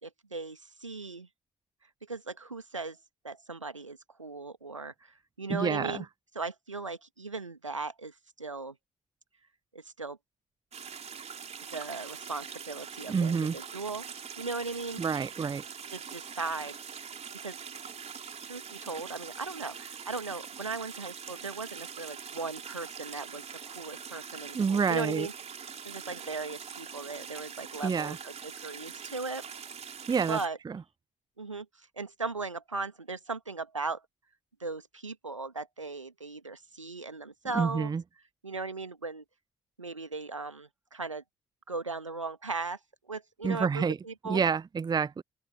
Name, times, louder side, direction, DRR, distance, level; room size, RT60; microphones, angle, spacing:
voice 1, 0.0-1.3 2.1-3.0 3.2-6.0 6.3-8.7 9.7-10.2 11.7-14.0 14.4-15.1 15.9-16.7 17.4-17.6 18.4-25.3 25.8-29.4 29.9-30.0 30.3-30.6 31.4-34.0 34.6-37.9 38.4-39.2 39.8-41.2 41.7-42.8 43.1-44.4, right 3 dB, 90° right, 1.8 m, -38 dB
voice 2, 5.5-6.0 13.1-13.6 15.0-15.6 24.5-25.3 27.8-28.2 30.1-30.4 30.7-30.8 37.5-38.0 43.4-44.0 44.2-45.2, right 6 dB, 25° right, 0.6 m, -28 dB
sound 1, 10.7-30.5, right 7 dB, 45° right, 3.8 m, -43 dB
open air
figure-of-eight pair, 40°, 16 cm